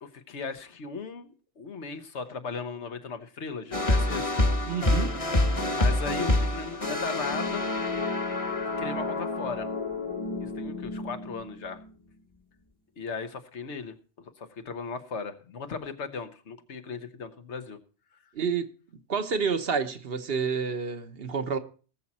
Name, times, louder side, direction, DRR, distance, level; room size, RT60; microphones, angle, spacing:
voice 1, 0.0-4.4 5.7-7.7 8.8-9.7 10.4-11.8 13.0-17.8, left 5 dB, 80° left, 1.4 m, -37 dB
sound 1, 3.7-11.9, left 2 dB, 30° left, 1.2 m, -28 dB
voice 2, 4.7-5.2 18.3-18.7 19.1-21.6, right 5 dB, 60° right, 1.1 m, -29 dB
19.5 x 7.3 x 4.2 m
omnidirectional pair, 1.1 m